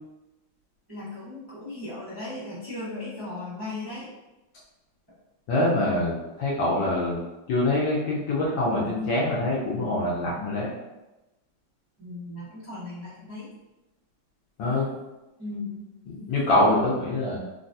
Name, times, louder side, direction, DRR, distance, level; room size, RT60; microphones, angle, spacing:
voice 1, 0.9-4.1 12.0-13.5 15.4-15.9, left 2 dB, 35° right, -11 dB, 0.4 m, -37 dB
voice 2, 5.5-7.2 7.5-10.7 14.6-14.9 16.1-17.4, left 1 dB, 70° left, -6 dB, 1.3 m, -24 dB
3.9 x 2.2 x 2.6 m, 1.0 s
omnidirectional pair, 2.3 m